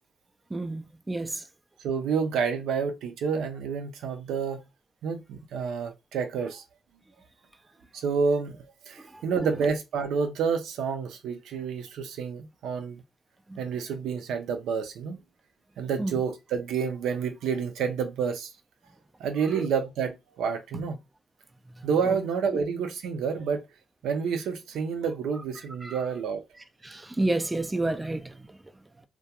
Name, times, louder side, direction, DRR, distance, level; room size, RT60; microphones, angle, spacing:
voice 1, 0.5-1.4 16.0-16.1 22.1-22.2 25.8-26.0 26.8-28.2, right 2 dB, 15° right, 0.3 m, -29 dB
voice 2, 1.8-4.6 5.0-6.6 7.9-8.6 8.9-13.0 13.6-15.2 15.8-18.5 19.2-21.0 21.8-23.6 24.0-26.4, right 6 dB, 80° right, 0.4 m, -29 dB
2.3 x 2.1 x 2.8 m
cardioid pair, 90°, 0 cm